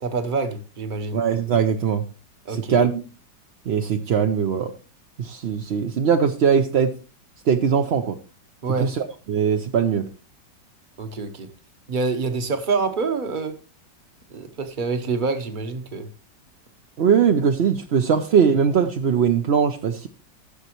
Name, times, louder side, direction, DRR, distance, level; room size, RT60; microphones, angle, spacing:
voice 1, 0.0-1.2 2.4-2.8 8.6-9.0 9.8-9.9 11.0-11.5 11.9-13.6 14.3-16.1, right 4 dB, 35° right, 0.9 m, -26 dB
voice 2, 1.1-2.0 2.5-3.0 3.7-4.7 5.2-6.9 7.5-8.2 8.8-10.1 17.0-20.1, right 7 dB, 65° right, 0.6 m, -20 dB
15.0 x 6.7 x 3.0 m
omnidirectional pair, 1.9 m